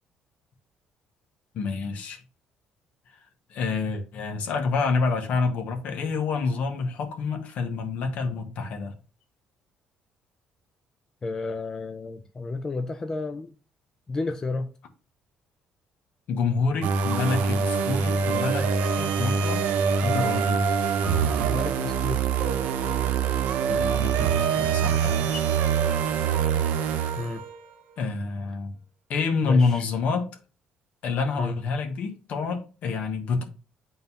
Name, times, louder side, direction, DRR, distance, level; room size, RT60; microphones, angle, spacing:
voice 1, 1.5-2.2 3.5-8.9 16.3-20.6 23.7-25.4 28.0-28.7 29.1-30.3 31.0-33.4, left 4 dB, 60° left, 1.3 m, -28 dB
voice 2, 11.2-13.5 14.1-14.7 21.4-22.3 27.2-27.4 29.4-29.8 31.4-31.6, left 3 dB, 20° left, 0.4 m, -31 dB
sound 1, 16.8-27.6, right 6 dB, 75° right, 0.7 m, -24 dB
9.2 x 3.8 x 2.8 m
cardioid pair, 150°, 3 cm